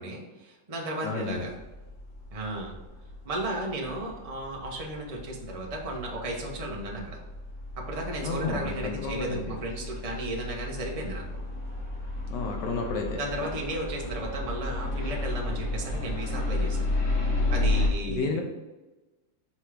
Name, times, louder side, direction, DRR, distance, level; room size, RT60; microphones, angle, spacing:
voice 1, 0.0-1.5 2.3-2.7 3.2-7.2 7.8-11.2 13.2-16.9 17.5-18.4, right 1 dB, 25° right, -1 dB, 0.8 m, -34 dB
voice 2, 1.0-1.5 8.2-9.6 12.3-13.2 18.0-18.4, left 4 dB, 70° left, 3 dB, 1.4 m, -31 dB
sound 1, 1.3-17.9, left 2 dB, 45° left, 1.3 m, -33 dB
5.7 x 3.6 x 4.8 m, 1.1 s
omnidirectional pair, 2.0 m